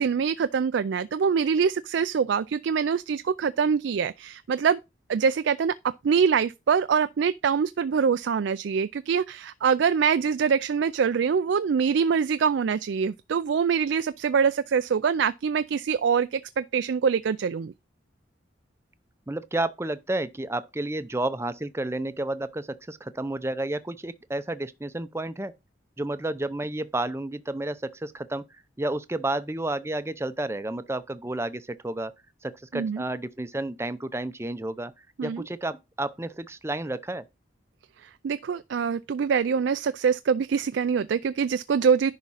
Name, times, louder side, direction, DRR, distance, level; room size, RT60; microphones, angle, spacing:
voice 1, 0.0-4.8 5.1-5.7 6.0-17.7 32.7-33.0 35.2-35.4 38.0-42.1, right 6 dB, 70° right, 0.4 m, -24 dB
voice 2, 19.3-25.5 26.0-28.4 28.8-32.1 32.4-34.9 35.2-37.2, right 2 dB, 15° right, 0.6 m, -31 dB
10.5 x 3.7 x 5.6 m
head